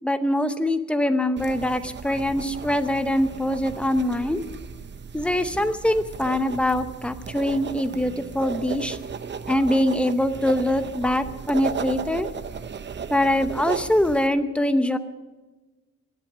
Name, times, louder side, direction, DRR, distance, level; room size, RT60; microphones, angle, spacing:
voice 1, 0.0-4.4 5.1-9.0 9.5-12.3 13.1-15.0, left 1 dB, 5° left, 9 dB, 0.8 m, -23 dB
sound 1, 1.4-14.3, right 6 dB, 40° right, 0.7 m, -35 dB
18.5 x 11.5 x 6.1 m, 1.2 s
wide cardioid pair, 170°, 29 cm